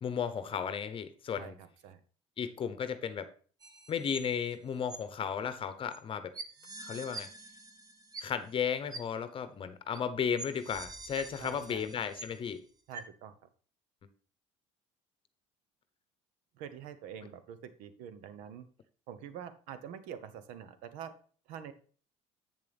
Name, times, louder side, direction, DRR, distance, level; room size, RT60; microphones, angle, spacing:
voice 1, 0.0-1.6 2.4-3.3 3.9-6.3 6.8-7.3 8.2-12.6, left 7 dB, 40° left, 11 dB, 0.9 m, -34 dB
voice 2, 1.4-2.0 11.4-11.9 12.9-13.3 16.6-18.7 19.1-21.1 21.5-21.7, right 8 dB, 80° right, 12 dB, 0.9 m, -46 dB
sound 1, 3.6-4.5 4.9-5.0 5.9-6.0 6.3-8.6 8.9-9.0 9.9-10.0 10.4-12.5 12.9-13.0, right 3 dB, 30° right, 1.1 m, -45 dB
8.2 x 6.9 x 3.4 m, 0.42 s
supercardioid pair, 95°, 13 cm